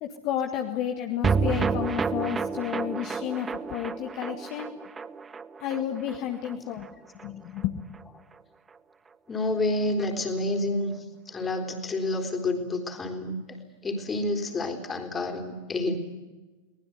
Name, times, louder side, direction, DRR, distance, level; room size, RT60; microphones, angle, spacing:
voice 1, 0.0-4.7 5.6-6.9 7.2-7.8, left 10 dB, 40° left, 4 dB, 1.8 m, -31 dB
sound 1, 1.2-7.7 7.9-8.0 8.3-8.4, right 5 dB, 15° right, 0.8 m, -30 dB
voice 2, 9.3-11.0 11.3-13.4 13.8-16.0, left 2 dB, 20° left, 4 dB, 3.9 m, -29 dB
23.5 x 19.5 x 9.5 m, 1.2 s
figure-of-eight pair, 90°, 0 cm